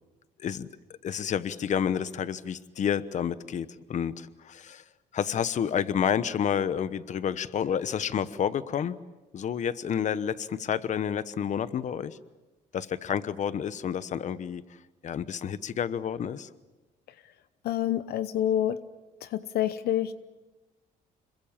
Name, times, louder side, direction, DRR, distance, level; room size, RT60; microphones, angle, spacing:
voice 1, 1.0-4.8 5.1-9.0 9.3-12.2 12.7-14.6 15.0-16.5, left 8 dB, 45° left, 15 dB, 1.1 m, -29 dB
voice 2, 17.6-18.8 19.2-20.1, left 11 dB, 70° left, 13 dB, 0.9 m, -27 dB
26.5 x 22.5 x 7.4 m, 1.1 s
cardioid pair, 110°, 17 cm